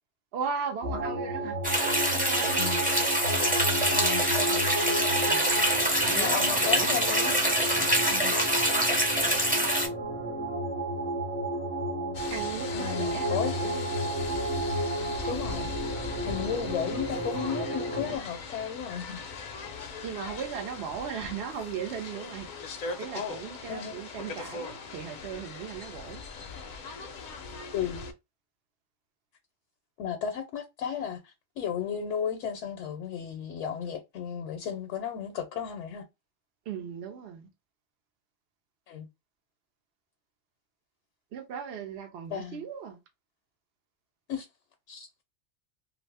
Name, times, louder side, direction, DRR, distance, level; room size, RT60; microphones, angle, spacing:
voice 1, 0.3-1.6 2.1-2.8 4.4-4.6 5.3-5.6 6.0-7.0 7.8-8.0 12.3-13.9 20.0-22.5 23.0-26.2 36.7-37.5 41.3-43.0, right 7 dB, 65° right, 0.8 m, -37 dB
sound 1, 0.8-18.2, right 1 dB, 45° right, 1.1 m, -32 dB
sound 2, 1.6-9.9, right 1 dB, 10° right, 0.6 m, -25 dB
voice 2, 3.9-4.3 6.1-7.3 8.1-8.3 12.7-13.6 15.3-15.7 16.3-19.2 23.6-24.0 27.7-28.1 30.0-36.0 38.9-39.1 42.3-42.7 44.3-44.5 44.9-45.1, left 8 dB, 80° left, 0.9 m, -34 dB
sound 3, 12.1-28.1, left 5 dB, 55° left, 0.6 m, -40 dB
2.6 x 2.4 x 3.3 m
omnidirectional pair, 1.2 m